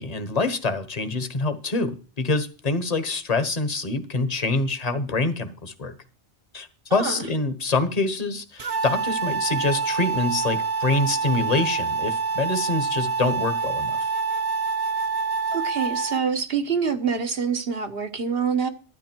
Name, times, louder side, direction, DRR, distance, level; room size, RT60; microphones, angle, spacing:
voice 1, 0.0-5.9 6.5-14.1, left 3 dB, 35° left, 1.4 m, -26 dB
voice 2, 6.9-7.3 15.5-18.7, right 6 dB, 60° right, 1.6 m, -26 dB
sound 1, 8.6-16.2, right 4 dB, 35° right, 1.0 m, -26 dB
12.5 x 9.9 x 4.6 m
omnidirectional pair, 1.1 m